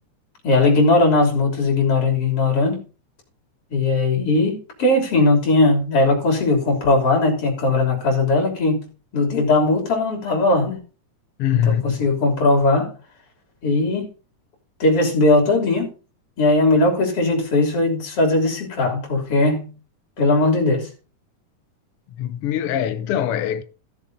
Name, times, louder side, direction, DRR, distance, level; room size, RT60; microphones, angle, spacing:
voice 1, 0.4-2.8 3.7-8.9 9.1-10.8 11.5-12.9 13.6-14.1 14.8-15.9 16.4-19.7 20.2-20.9, left 2 dB, 45° left, 4.1 m, -19 dB
voice 2, 11.4-12.0 22.2-23.6, left 10 dB, 80° left, 1.3 m, -22 dB
15.0 x 7.1 x 4.0 m
omnidirectional pair, 3.7 m